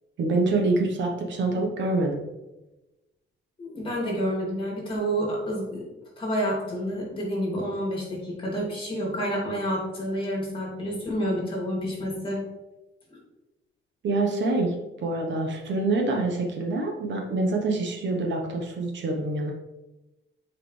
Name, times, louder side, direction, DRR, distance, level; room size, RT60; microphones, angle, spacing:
voice 1, 0.2-2.2 14.0-19.5, right 2 dB, 65° right, 2 dB, 1.2 m, -26 dB
voice 2, 3.6-5.8 6.2-12.4 13.1-13.2, equal, 25° left, -3 dB, 2.6 m, -29 dB
9.2 x 4.8 x 3.3 m, 1.0 s
cardioid pair, 160°, 21 cm